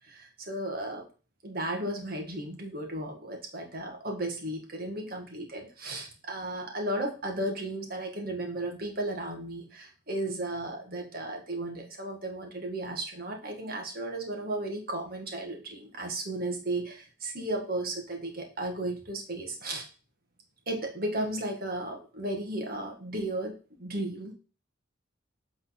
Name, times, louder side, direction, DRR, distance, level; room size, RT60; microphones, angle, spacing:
voice 1, 0.1-1.1 1.4-19.9 20.7-24.3, right 1 dB, 45° right, 2 dB, 1.7 m, -34 dB
8.0 x 3.9 x 4.2 m, 0.35 s
head